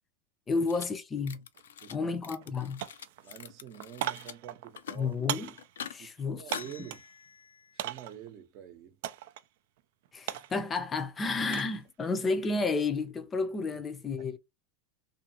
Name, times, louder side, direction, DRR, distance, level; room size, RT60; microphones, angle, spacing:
voice 1, 0.5-1.4 1.9-2.8 5.0-5.5 5.9-6.6 10.1-14.4, left 4 dB, 25° left, 0.5 m, -31 dB
sound 1, 0.7-0.9 1.2-2.0 2.2-4.3 4.6-5.1 5.6-6.0 6.4-7.8, left 8 dB, 85° left, 0.3 m, -45 dB
sound 2, 1.5-1.7 2.0-2.5 2.8-7.1 7.8-8.3 9.0-9.5 9.8-11.8 12.1-12.5, right 13 dB, 70° right, 0.3 m, -39 dB
voice 2, 1.8-2.2 2.5-2.6 3.2-5.2 6.0-7.0 7.7-9.0 14.2-14.3, right 10 dB, 50° right, 0.7 m, -47 dB
2.6 x 2.4 x 2.7 m
hypercardioid pair, 105°, 0 cm